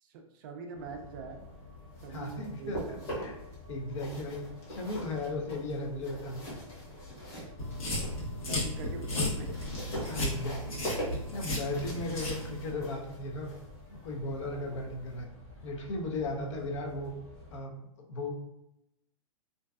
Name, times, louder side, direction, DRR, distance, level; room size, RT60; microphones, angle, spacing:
voice 1, 0.0-1.5 2.0-3.4 7.1-7.7 8.4-9.7 14.5-14.8, right 4 dB, 40° right, 4 dB, 0.4 m, -45 dB
sound 1, 0.7-17.6, left 3 dB, 5° left, 0.7 m, -51 dB
sound 2, 1.7-3.5 3.9-8.2 8.6-15.2, equal, 35° left, 1.0 m, -42 dB
voice 2, 2.1-3.4 3.7-6.6 9.9-10.8 11.3-13.5 13.9-15.3 15.6-17.1 17.5-18.3, left 2 dB, 60° left, 2 dB, 0.6 m, -36 dB
sound 3, 7.6-12.7, left 1 dB, 90° left, 1.2 m, -34 dB
2.5 x 2.2 x 2.3 m, 0.88 s
hypercardioid pair, 150°, 17 cm